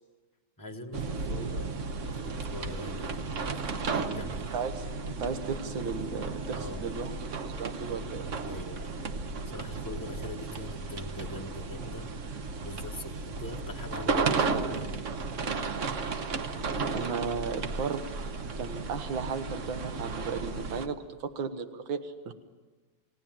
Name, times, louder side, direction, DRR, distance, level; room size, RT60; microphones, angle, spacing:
voice 1, 0.6-4.5 6.5-7.0 8.2-9.0 9.5-12.1 12.6-15.0, left 1 dB, 10° left, 3 dB, 1.1 m, -43 dB
sound 1, 0.9-20.9, right 4 dB, 45° right, 1.2 m, -34 dB
voice 2, 4.5-7.1 7.4-8.2 16.9-18.1 18.6-22.3, right 5 dB, 85° right, 8 dB, 2.1 m, -35 dB
30.0 x 17.5 x 7.6 m, 1.3 s
omnidirectional pair, 2.1 m